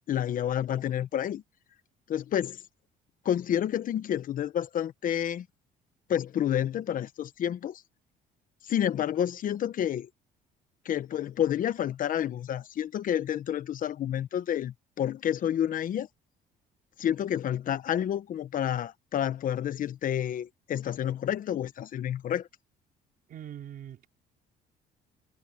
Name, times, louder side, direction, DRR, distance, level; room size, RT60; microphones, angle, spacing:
voice 1, 0.1-1.4 2.1-2.6 3.2-5.5 6.1-7.8 8.6-10.1 10.8-16.1 17.0-22.5, left 10 dB, 55° left, 1.1 m, -29 dB
voice 2, 23.3-24.1, right 10 dB, 60° right, 4.6 m, -42 dB
cardioid pair, 110°, 17 cm